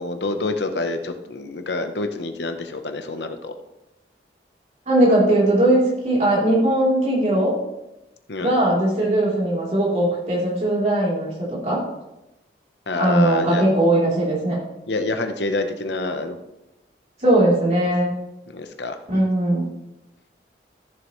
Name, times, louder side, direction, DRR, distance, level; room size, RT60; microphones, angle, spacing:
voice 1, 0.0-3.5 8.3-8.6 12.9-13.6 14.9-16.4 18.5-19.3, left 2 dB, 80° left, 7 dB, 0.9 m, -27 dB
voice 2, 4.9-7.5 8.4-11.8 12.9-14.6 17.2-18.1 19.1-19.7, right 1 dB, 40° right, -5 dB, 3.5 m, -19 dB
14.0 x 7.2 x 3.2 m, 0.93 s
head